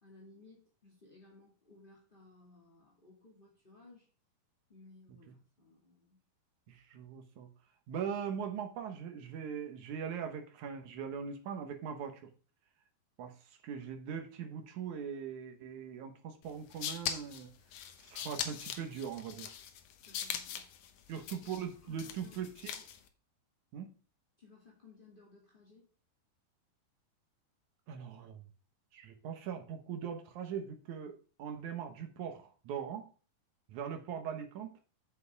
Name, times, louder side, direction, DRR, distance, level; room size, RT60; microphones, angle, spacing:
voice 1, 0.0-4.1 4.7-6.2 20.0-20.7 21.1-21.3 21.8-22.4 22.6-22.9 24.4-25.9, left 3 dB, 25° left, -4 dB, 1.1 m, -59 dB
voice 2, 6.7-7.5 7.9-12.3 13.2-13.3 13.6-17.5 18.0-19.5 21.1-22.7 23.7-23.9 27.9-28.4 28.9-33.1 33.7-34.7, right 7 dB, 70° right, 6 dB, 1.9 m, -41 dB
sound 1, 16.5-23.1, left 9 dB, 75° left, 1.8 m, -41 dB
9.2 x 7.0 x 3.5 m, 0.37 s
omnidirectional pair, 4.9 m